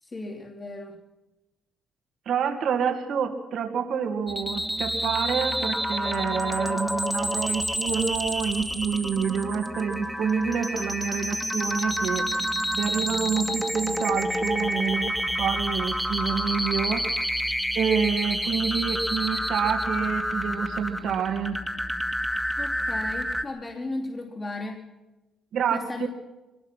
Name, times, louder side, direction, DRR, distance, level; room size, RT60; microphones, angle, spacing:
voice 1, 0.0-1.0 22.6-24.8 25.7-26.1, left 2 dB, 30° left, -3 dB, 3.1 m, -35 dB
voice 2, 2.3-12.3 12.8-17.1 17.7-21.6 25.5-26.1, right 7 dB, 70° right, 4 dB, 2.4 m, -28 dB
sound 1, 4.3-23.4, equal, ahead, 2.2 m, -29 dB
23.0 x 20.0 x 5.9 m, 1.0 s
cardioid pair, 90°, 0 cm